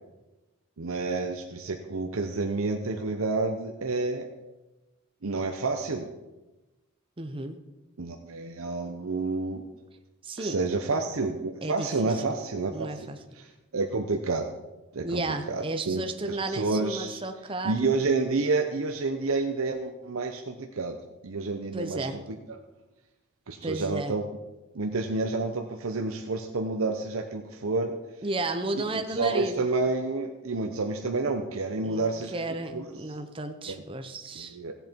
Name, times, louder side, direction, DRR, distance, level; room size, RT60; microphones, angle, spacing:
voice 1, 0.8-4.3 5.2-6.1 8.0-9.6 10.4-12.9 13.4-14.5 14.9-15.2 15.5-17.2 17.6-21.0 21.2-22.2 22.5-22.6 23.5-24.2 24.7-27.9 29.1-32.4 32.7-32.8 33.7-33.8 34.4-34.8, right 3 dB, 85° right, 4 dB, 0.9 m, -29 dB
voice 2, 7.2-7.6 10.2-10.6 11.6-12.2 12.7-13.2 15.0-17.9 21.7-22.2 23.6-24.1 28.2-29.6 31.8-34.6, right 2 dB, 25° right, 6 dB, 0.7 m, -33 dB
16.5 x 8.0 x 4.6 m, 1.1 s
head